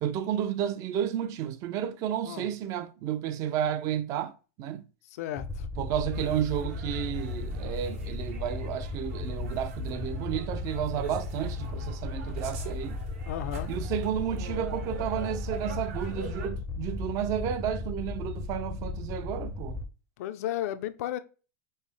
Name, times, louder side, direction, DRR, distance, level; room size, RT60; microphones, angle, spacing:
voice 1, 0.0-4.3 4.6-4.8 5.8-13.0 13.7-19.8, right 10 dB, 45° right, 0.5 m, -32 dB
voice 2, 5.1-5.7 13.3-13.7 20.2-21.2, left 12 dB, 75° left, 0.5 m, -34 dB
sound 1, 5.4-19.9, left 3 dB, 10° left, 0.5 m, -36 dB
sound 2, 6.1-16.5, right 5 dB, 70° right, 1.1 m, -44 dB
5.4 x 2.1 x 3.2 m
supercardioid pair, 135°, 8 cm